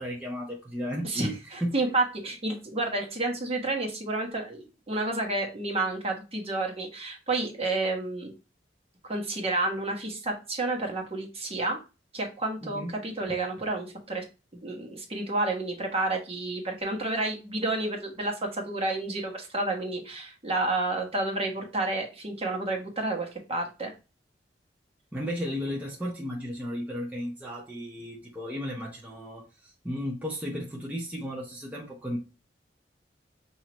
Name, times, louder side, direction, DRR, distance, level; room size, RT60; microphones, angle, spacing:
voice 1, 0.0-1.4 1.6-1.7 12.6-12.9 25.1-32.2, equal, 10° right, 0.8 m, -34 dB
voice 2, 1.0-8.3 9.0-11.8 12.1-14.2 14.5-23.9, right 2 dB, 35° right, 1.2 m, -30 dB
6.0 x 2.8 x 2.9 m
head